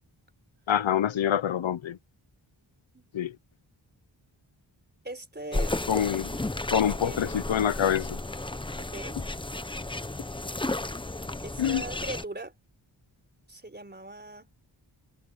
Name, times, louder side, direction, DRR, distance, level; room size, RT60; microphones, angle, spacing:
voice 1, 0.7-2.0 3.1-3.3 5.9-6.3 6.7-8.2 11.6-11.8, left 9 dB, 85° left, 0.9 m, -26 dB
voice 2, 5.0-5.8 6.9-7.5 8.8-9.2 11.4-12.6 13.5-14.5, right 2 dB, 20° right, 4.0 m, -40 dB
sound 1, 5.5-12.2, left 2 dB, 10° left, 0.8 m, -33 dB
wide cardioid pair, 90°, 46 cm